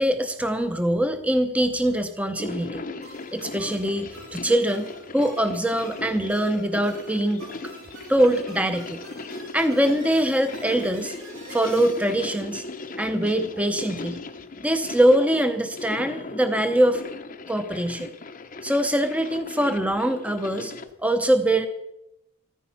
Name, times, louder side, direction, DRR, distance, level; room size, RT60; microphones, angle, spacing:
voice 1, 0.0-2.8 3.3-4.9 5.1-7.4 8.1-9.0 9.5-11.1 11.5-12.6 13.0-14.2 14.6-17.0 17.5-18.1 18.6-20.7 21.0-21.7, right 1 dB, 5° right, 8 dB, 0.7 m, -23 dB
sound 1, 2.3-20.9, left 3 dB, 40° left, 0.8 m, -38 dB
sound 2, 3.0-13.4, right 2 dB, 65° right, 5.1 m, -46 dB
15.0 x 14.0 x 5.7 m, 0.86 s
head